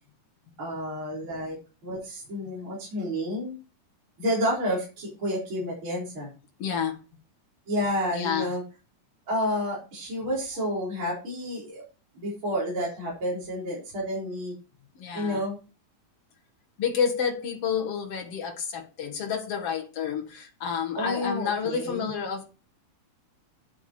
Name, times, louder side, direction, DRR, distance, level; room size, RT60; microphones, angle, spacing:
voice 1, 0.6-1.6 1.8-3.5 4.2-6.3 7.7-8.6 9.3-11.8 12.1-14.5 15.1-15.6 21.0-22.2, equal, 40° right, -5 dB, 4.7 m, -30 dB
voice 2, 6.6-7.0 8.1-8.5 15.0-15.4 16.8-22.4, left 7 dB, 50° left, 4 dB, 2.5 m, -29 dB
9.4 x 8.1 x 4.5 m, 0.32 s
omnidirectional pair, 3.8 m